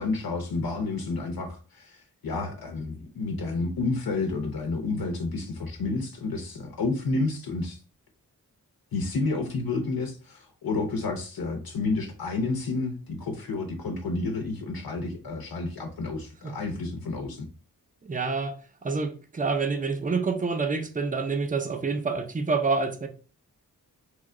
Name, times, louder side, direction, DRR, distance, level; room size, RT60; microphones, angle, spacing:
voice 1, 0.0-7.8 8.9-17.5, left 3 dB, 80° left, 0.6 m, -30 dB
voice 2, 18.0-23.1, right 4 dB, 25° right, 0.5 m, -28 dB
3.0 x 2.2 x 3.6 m
wide cardioid pair, 75°, 35 cm